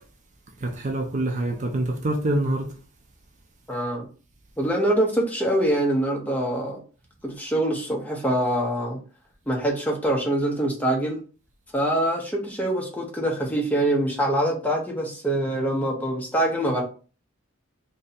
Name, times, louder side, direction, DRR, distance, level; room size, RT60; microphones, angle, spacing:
voice 1, 0.6-2.7, right 1 dB, 35° right, 0.5 m, -25 dB
voice 2, 3.7-4.0 4.6-6.8 7.2-9.0 9.5-11.2 11.7-16.8, right 1 dB, 5° left, 0.6 m, -24 dB
2.7 x 2.6 x 4.0 m
head